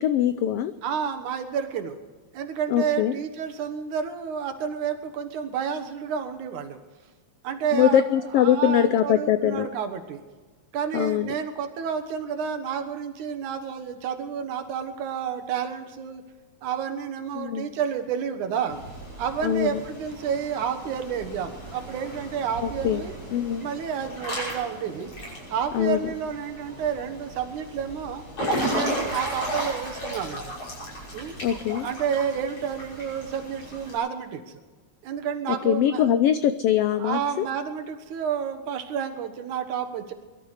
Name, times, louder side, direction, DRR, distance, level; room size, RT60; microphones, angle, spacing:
voice 1, 0.0-0.7 2.7-3.1 7.7-9.7 10.9-11.3 17.3-17.7 19.4-19.8 22.6-23.1 23.3-23.7 25.7-26.1 31.4-31.9 35.5-37.5, left 10 dB, 90° left, 11 dB, 1.3 m, -22 dB
voice 2, 0.8-2.0 2.3-6.8 7.4-8.0 8.3-10.2 10.7-16.2 16.6-18.8 19.2-23.1 23.6-25.1 25.5-28.2 28.7-30.5 31.1-31.4 31.8-34.6 35.0-36.0 37.0-40.1, right 7 dB, 85° right, 6 dB, 2.8 m, -30 dB
Water / Splash splatter / Drip, 18.7-34.0, equal, 50° left, 6.9 m, -35 dB
22.5 x 12.5 x 5.0 m, 1.3 s
omnidirectional pair, 3.4 m